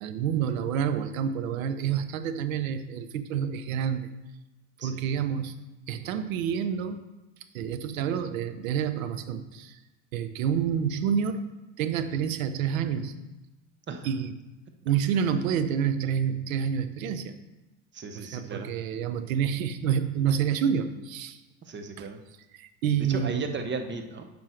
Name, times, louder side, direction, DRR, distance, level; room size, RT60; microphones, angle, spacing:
voice 1, 0.0-4.1 4.8-5.5 5.9-7.0 7.5-9.8 10.1-11.4 11.8-13.1 14.0-14.3 14.8-17.4 18.2-21.4 22.0-22.1 22.5-23.5, right 8 dB, 85° right, 11 dB, 0.8 m, -28 dB
voice 2, 17.9-18.7 21.6-22.2 23.1-24.2, right 4 dB, 30° right, 6 dB, 1.0 m, -36 dB
7.7 x 5.4 x 4.5 m, 1.0 s
supercardioid pair, 90°, 39 cm